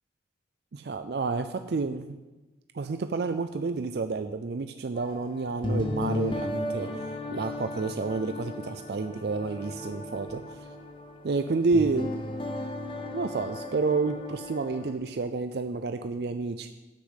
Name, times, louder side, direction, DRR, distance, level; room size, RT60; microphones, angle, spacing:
voice 1, 0.7-2.2 2.7-7.0 7.3-10.7 11.2-12.1 13.1-16.7, right 4 dB, 65° right, 8 dB, 0.4 m, -30 dB
sound 1, 5.0-14.9, left 1 dB, 30° left, 0.8 m, -35 dB
8.4 x 6.4 x 8.0 m, 1.1 s
head